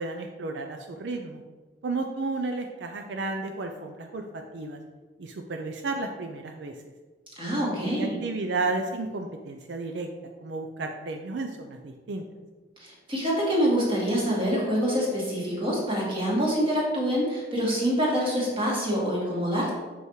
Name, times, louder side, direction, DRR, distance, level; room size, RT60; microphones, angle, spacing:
voice 1, 0.0-1.4 1.8-4.8 5.2-6.7 7.7-10.1 10.4-12.2, right 3 dB, 80° right, 4 dB, 0.5 m, -32 dB
voice 2, 7.4-8.2 12.8-19.7, equal, 30° right, -4 dB, 1.9 m, -26 dB
6.1 x 5.5 x 3.1 m, 1.3 s
head